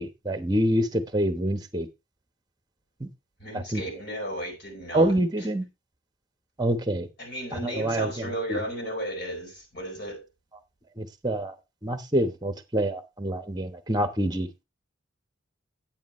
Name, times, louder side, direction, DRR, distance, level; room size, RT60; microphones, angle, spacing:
voice 1, 0.0-1.9 3.0-3.1 3.5-3.8 4.9-5.6 6.6-7.1 7.5-8.6 11.0-11.5 11.8-14.5, right 1 dB, 20° right, 1.1 m, -26 dB
voice 2, 3.4-5.5 7.2-10.2, equal, 50° left, 4.5 m, -34 dB
10.5 x 9.1 x 3.1 m
head